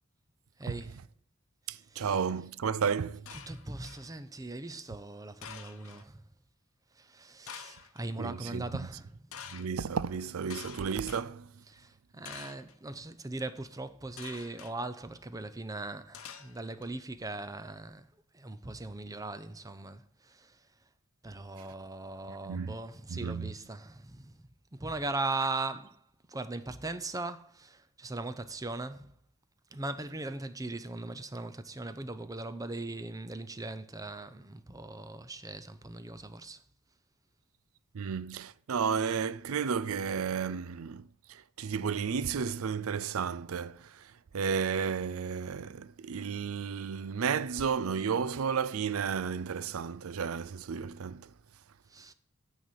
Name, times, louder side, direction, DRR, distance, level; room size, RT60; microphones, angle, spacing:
voice 1, 0.6-1.0 1.9-2.1 3.3-6.2 7.0-9.1 11.7-20.6 21.2-29.1 29.7-36.6 51.9-52.1, right 2 dB, 15° right, 0.6 m, -39 dB
voice 2, 1.7-3.3 8.2-8.7 9.5-11.5 22.5-22.8 23.1-23.5 37.9-44.1 44.3-51.3, right 6 dB, 85° right, 0.5 m, -32 dB
sound 1, 3.3-4.1 5.4-6.0 7.5-8.0 9.3-9.7 10.5-11.2 12.2-12.7 14.2-14.7 16.1-16.9, left 7 dB, 80° left, 0.9 m, -47 dB
9.2 x 4.2 x 7.0 m
head